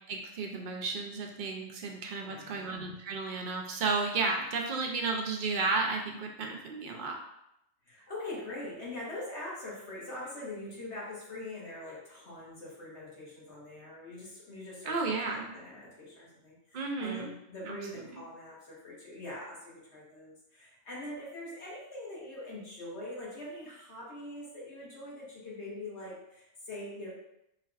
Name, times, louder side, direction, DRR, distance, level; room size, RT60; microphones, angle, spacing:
voice 1, 0.1-7.2 14.9-15.5 16.7-17.3 17.7-17.8 18.1-18.2, right 4 dB, 65° right, 1 dB, 0.4 m, -33 dB
voice 2, 2.2-2.7 7.8-27.1, left 1 dB, 55° left, -6 dB, 1.5 m, -43 dB
4.1 x 3.3 x 2.4 m, 0.83 s
omnidirectional pair, 1.4 m